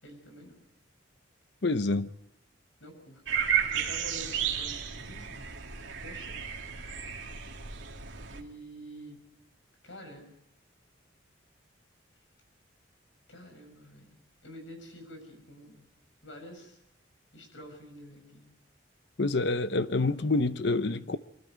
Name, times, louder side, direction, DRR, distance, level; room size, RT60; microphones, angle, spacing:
voice 1, 0.0-0.6 2.8-5.5 6.0-6.4 8.3-9.2 9.8-10.3 13.3-15.8 16.2-16.8 17.3-18.5, equal, 85° left, 6.7 m, -48 dB
voice 2, 1.6-2.1 19.2-21.2, left 3 dB, 65° left, 0.8 m, -27 dB
sound 1, 3.3-8.4, right 8 dB, 80° right, 2.3 m, -33 dB
24.5 x 13.0 x 9.2 m
head